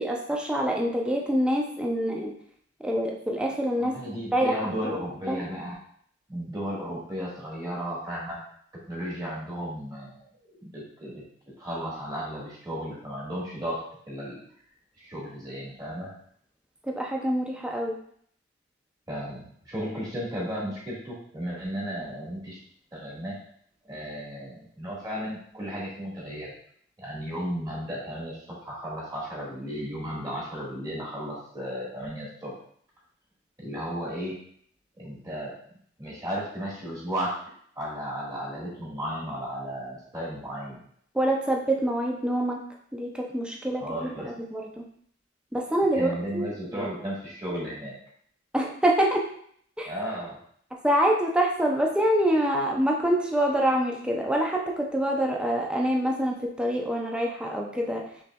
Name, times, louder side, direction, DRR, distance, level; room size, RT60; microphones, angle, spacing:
voice 1, 0.0-2.3 2.8-4.7 5.3-5.4 16.8-18.0 41.1-42.6 42.9-44.8 45.5-46.9 48.5-49.3 49.8-49.9 50.8-58.0, right 1 dB, 5° right, 0 dB, 0.5 m, -26 dB
voice 2, 3.8-5.7 6.3-8.4 8.9-10.3 10.6-11.2 11.6-13.8 14.1-14.4 15.0-16.1 19.1-22.6 22.9-23.4 23.8-26.5 27.0-32.5 33.6-34.3 35.0-35.5 36.0-37.3 37.7-40.8 43.8-44.3 45.9-47.9 49.8-50.4, equal, 20° right, -6 dB, 1.5 m, -34 dB
5.4 x 3.3 x 2.2 m, 0.62 s
head